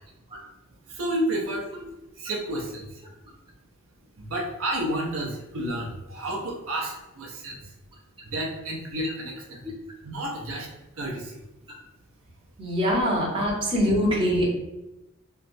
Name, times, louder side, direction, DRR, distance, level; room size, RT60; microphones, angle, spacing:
voice 1, 0.9-1.7 2.1-3.0 4.2-7.7 8.2-9.7 10.0-11.4, right 1 dB, 65° right, -2 dB, 0.6 m, -31 dB
voice 2, 12.6-14.5, equal, 25° right, -4 dB, 0.8 m, -23 dB
3.1 x 2.9 x 2.6 m, 0.96 s
head